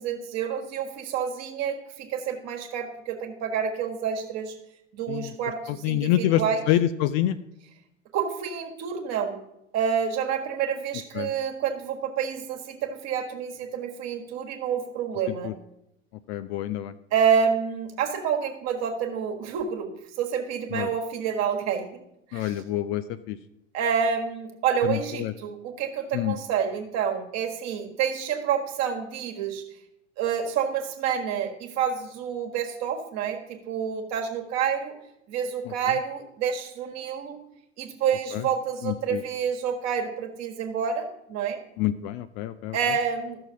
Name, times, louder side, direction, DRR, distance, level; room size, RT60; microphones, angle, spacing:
voice 1, 0.0-4.5 4.9-6.6 8.1-9.4 9.7-15.5 17.1-19.9 20.2-21.9 22.3-22.6 23.7-29.6 30.2-34.9 35.3-37.4 37.8-41.6 42.7-43.4, right 7 dB, 45° right, 2 dB, 1.7 m, -28 dB
voice 2, 5.8-6.4 6.7-7.4 11.2-11.3 15.4-15.5 16.3-16.9 20.7-20.9 22.3-23.4 24.8-25.3 26.1-26.4 38.3-38.4 38.8-39.2 41.8-42.8, left 13 dB, 40° left, 12 dB, 0.5 m, -26 dB
14.5 x 6.5 x 2.8 m, 0.83 s
figure-of-eight pair, 80°, 37 cm